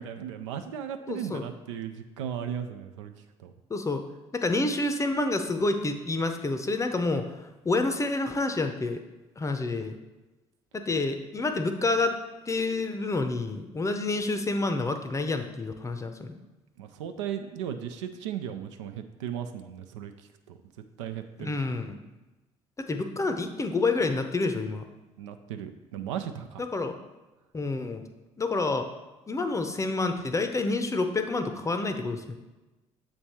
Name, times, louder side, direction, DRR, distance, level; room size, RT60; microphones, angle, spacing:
voice 1, 0.0-3.1 3.4-3.5 16.8-20.1 20.5-20.6 21.0-21.8 25.2-26.6, right 9 dB, 75° right, 7 dB, 0.4 m, -36 dB
voice 2, 1.1-1.4 3.7-4.0 4.3-7.3 7.6-9.0 9.4-10.0 10.7-12.2 12.5-16.4 21.4-22.0 22.8-24.9 26.6-27.0 27.5-28.0 28.4-28.9 29.3-32.4, left 3 dB, 20° left, 8 dB, 0.6 m, -28 dB
7.4 x 3.3 x 4.2 m, 1.1 s
figure-of-eight pair, 50°, 16 cm